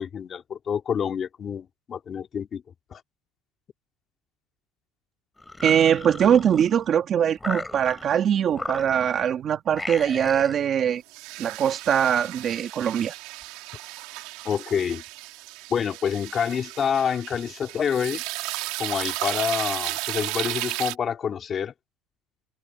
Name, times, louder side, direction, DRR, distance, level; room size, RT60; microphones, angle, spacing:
voice 1, 0.0-2.6 2.9-3.0 14.4-15.0 15.7-18.2 18.8-21.7, left 7 dB, 30° left, 3.0 m, -27 dB
sound 1, 5.4-6.9 7.4-8.2 8.5-9.3 9.7-10.6, left 2 dB, 10° left, 5.6 m, -36 dB
voice 2, 5.6-11.0 11.4-13.1, right 9 dB, 35° right, 2.3 m, -22 dB
sound 2, 11.1-21.0, right 21 dB, 75° right, 3.2 m, -34 dB
cardioid pair, 170°, 0 cm